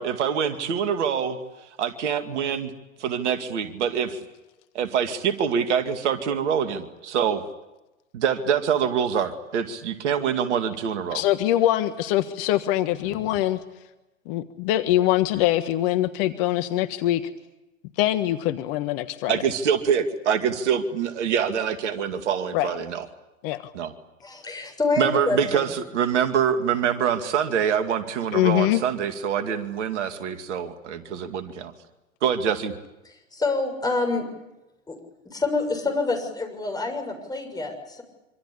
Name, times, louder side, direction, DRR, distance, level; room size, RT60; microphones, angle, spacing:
voice 1, 0.0-1.4 1.8-2.7 3.0-4.2 4.7-7.5 8.1-11.2 19.3-23.1 23.7-23.9 25.0-31.7 32.2-32.7, right 7 dB, 60° right, 8 dB, 2.4 m, -25 dB
voice 2, 11.1-13.6 14.3-17.2 18.0-19.4 22.5-22.7 23.4-23.6 28.3-28.8, left 14 dB, 45° left, 11 dB, 1.5 m, -23 dB
voice 3, 24.2-25.6 33.3-34.3 34.9-35.0 35.2-38.0, left 3 dB, 10° left, 4 dB, 6.8 m, -27 dB
25.5 x 25.5 x 8.5 m, 0.99 s
figure-of-eight pair, 100°, 39 cm